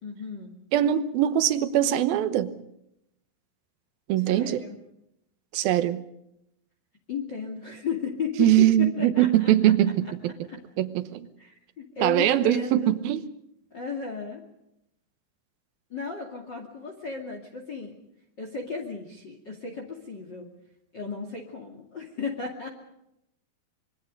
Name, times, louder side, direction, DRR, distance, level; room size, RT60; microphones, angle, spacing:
voice 1, 0.0-0.5 4.2-4.8 7.1-9.7 10.5-10.6 11.4-12.9 13.7-14.4 15.9-17.9 18.4-20.5 20.9-22.7, left 5 dB, 35° left, 2.4 m, -35 dB
voice 2, 0.7-2.5 4.1-4.6 5.5-6.0 8.4-10.3 10.8-11.3 12.0-13.2, right 12 dB, 75° right, 2.7 m, -22 dB
25.5 x 23.0 x 5.3 m
omnidirectional pair, 4.6 m